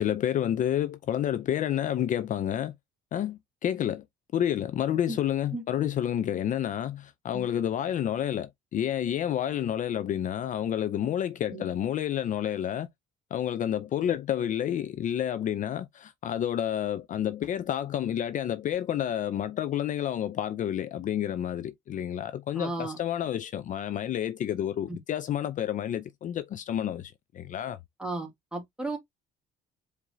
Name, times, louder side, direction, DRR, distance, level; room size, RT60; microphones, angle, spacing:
voice 1, 0.0-2.7 3.1-4.0 4.3-12.9 13.3-27.8, left 10 dB, 50° left, 0.5 m, -29 dB
voice 2, 22.6-23.0 24.9-25.0 28.0-29.0, right 2 dB, 5° right, 2.1 m, -34 dB
4.8 x 3.4 x 2.7 m
cardioid pair, 110°, 17 cm